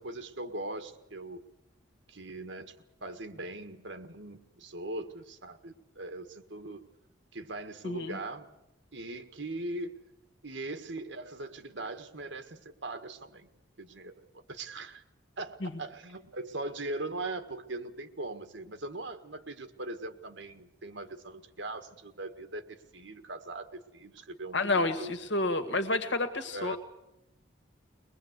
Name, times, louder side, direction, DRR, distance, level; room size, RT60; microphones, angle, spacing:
voice 1, 0.0-1.4 2.1-2.7 3.0-6.8 7.3-8.5 8.9-10.0 10.4-13.5 13.8-14.1 14.5-15.0 15.4-25.1 26.5-26.8, right 2 dB, 75° right, 9 dB, 1.7 m, -40 dB
voice 2, 7.8-8.2 15.6-15.7 24.5-26.8, left 2 dB, 70° left, 8 dB, 1.9 m, -29 dB
22.5 x 21.0 x 8.1 m, 0.89 s
head